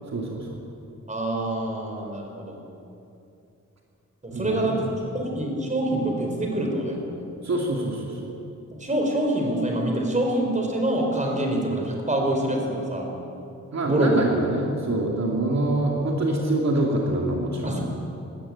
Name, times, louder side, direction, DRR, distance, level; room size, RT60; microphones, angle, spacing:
voice 1, 0.1-0.6 4.3-4.8 7.4-8.3 13.7-17.8, right 2 dB, 60° right, -1 dB, 2.9 m, -25 dB
voice 2, 1.1-2.6 4.2-4.8 5.1-7.3 8.7-13.1 13.8-14.2 17.6-17.8, right 1 dB, 25° right, 1 dB, 4.7 m, -25 dB
20.0 x 20.0 x 8.8 m, 2.7 s
wide cardioid pair, 155°, 30 cm